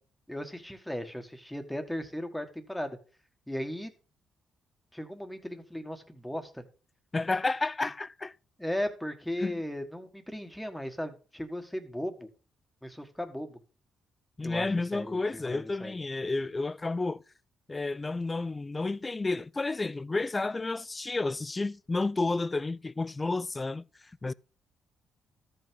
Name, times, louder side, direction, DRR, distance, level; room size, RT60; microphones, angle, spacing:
voice 1, 0.3-3.0 3.5-3.9 4.9-6.6 7.8-7.9 8.6-12.3 12.8-13.6 14.4-16.0, left 1 dB, 5° left, 1.5 m, -36 dB
voice 2, 7.1-8.3 9.4-9.6 14.4-17.2 17.7-23.9 24.2-24.3, left 3 dB, 20° left, 0.4 m, -31 dB
13.5 x 5.6 x 3.7 m
cardioid pair, 90°, 0 cm